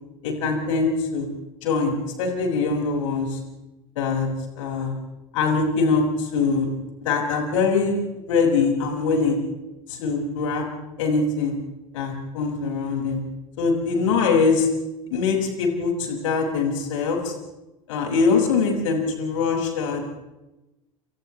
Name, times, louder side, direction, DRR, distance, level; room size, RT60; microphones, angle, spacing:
voice 1, 0.2-1.3 1.6-3.4 3.9-4.3 4.6-5.0 5.3-6.7 7.0-8.0 8.3-9.4 9.9-10.7 11.0-11.5 11.9-13.2 13.6-14.7 15.1-17.3 17.9-20.1, left 4 dB, 65° left, 1 dB, 6.6 m, -23 dB
30.0 x 28.5 x 3.4 m, 1.0 s
figure-of-eight pair, 75°, 18 cm